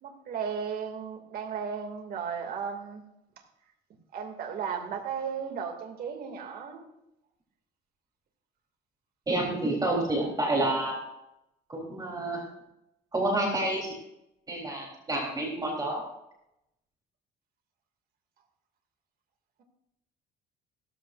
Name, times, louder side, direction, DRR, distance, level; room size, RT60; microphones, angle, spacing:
voice 1, 0.0-3.0 4.1-6.9, right 6 dB, 60° right, 3 dB, 2.5 m, -35 dB
voice 2, 9.3-11.0 11.7-12.4 13.1-14.0 14.5-16.0, right 1 dB, 20° right, -1 dB, 3.7 m, -29 dB
16.5 x 14.0 x 2.6 m, 0.85 s
cardioid pair, 110°, 17 cm